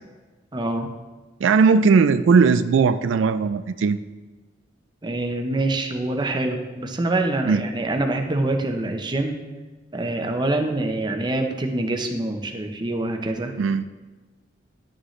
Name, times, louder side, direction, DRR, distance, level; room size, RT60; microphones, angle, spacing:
voice 1, 0.5-0.9 5.0-9.4 9.9-13.5, right 2 dB, 25° right, 4 dB, 0.7 m, -25 dB
voice 2, 1.4-4.0 7.4-7.6 13.6-13.8, right 5 dB, 85° right, 11 dB, 0.3 m, -18 dB
11.0 x 6.4 x 3.2 m, 1.3 s
head